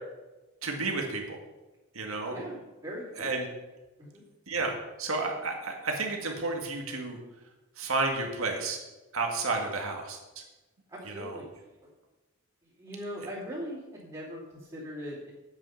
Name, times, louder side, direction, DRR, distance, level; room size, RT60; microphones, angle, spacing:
voice 1, 0.6-1.4 1.9-2.3 3.2-3.5 4.5-7.2 7.8-8.8 9.1-10.4 11.0-11.4, right 3 dB, 75° right, 2 dB, 1.9 m, -31 dB
voice 2, 2.3-3.3 4.0-4.2 10.9-11.5 12.8-15.3, equal, 20° right, -10 dB, 3.0 m, -40 dB
8.9 x 8.8 x 5.7 m, 1.1 s
head